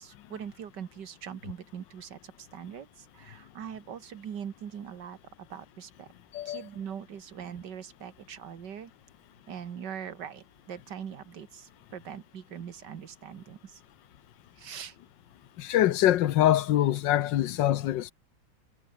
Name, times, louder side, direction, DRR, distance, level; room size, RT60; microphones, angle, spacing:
voice 1, 0.0-6.1 6.5-8.9 9.5-13.8 14.6-15.0, right 8 dB, 75° right, 2.0 m, -42 dB
voice 2, 15.6-18.1, left 12 dB, 85° left, 1.5 m, -24 dB
omnidirectional pair, 1.9 m